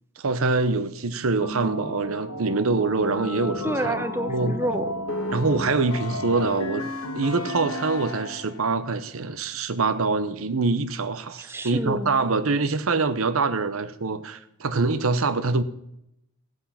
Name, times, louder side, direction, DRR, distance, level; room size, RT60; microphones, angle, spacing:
voice 1, 0.2-4.0 4.3-4.6 5.3-6.9 7.1-15.6, right 3 dB, 75° right, 0.8 m, -24 dB
sound 1, 1.4-8.7, left 2 dB, 85° left, 1.4 m, -32 dB
voice 2, 3.6-5.3 11.5-12.2, right 1 dB, 10° right, 0.6 m, -29 dB
16.0 x 8.1 x 5.7 m
head